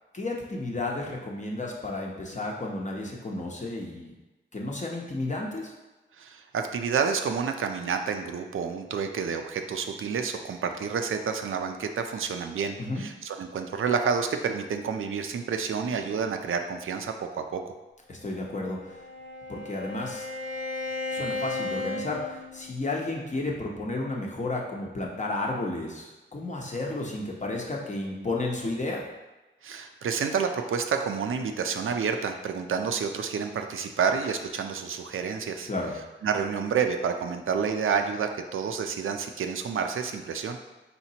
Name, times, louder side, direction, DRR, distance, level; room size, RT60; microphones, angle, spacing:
voice 1, 0.1-4.1 4.5-5.7 12.8-13.0 18.1-19.0 19.5-20.2 21.1-29.0 35.7-35.9, left 2 dB, 35° left, -1 dB, 0.9 m, -32 dB
voice 2, 6.2-17.7 29.6-35.7 36.2-40.6, right 6 dB, 85° right, 5 dB, 0.4 m, -29 dB
Bowed string instrument, 18.5-22.9, left 2 dB, 85° left, 1.5 m, -35 dB
4.3 x 4.1 x 2.8 m, 1.1 s
wide cardioid pair, 90°, 20 cm